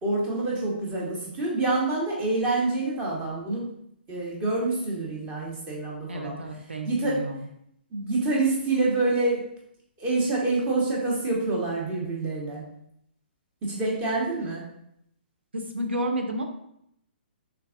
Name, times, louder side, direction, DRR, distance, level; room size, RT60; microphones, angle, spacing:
voice 1, 0.0-3.7 4.1-6.4 6.8-7.4 7.9-9.5 10.0-12.6 13.6-14.7, right 2 dB, 20° right, -4 dB, 1.0 m, -27 dB
voice 2, 6.1-7.4 15.5-16.4, right 1 dB, 80° right, 4 dB, 0.6 m, -31 dB
3.4 x 3.2 x 2.5 m, 0.74 s
figure-of-eight pair, 125°, 6 cm